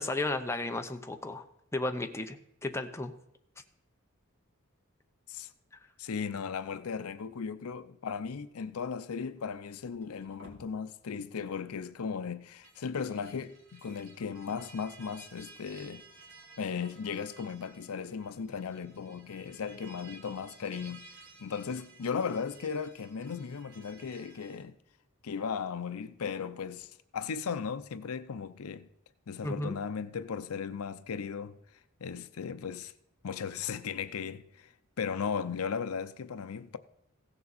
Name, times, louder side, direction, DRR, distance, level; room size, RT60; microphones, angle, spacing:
voice 1, 0.0-1.5 1.7-3.1 29.4-29.8, left 2 dB, 10° left, 0.7 m, -34 dB
voice 2, 6.0-16.0 16.6-21.1 21.4-24.8 25.2-28.9 29.3-31.6 32.0-32.9 33.2-34.7 35.0-36.8, left 6 dB, 80° left, 0.5 m, -36 dB
sound 1, 9.8-10.6 12.5-24.6, right 3 dB, 70° right, 2.8 m, -55 dB
16.0 x 6.9 x 4.1 m
head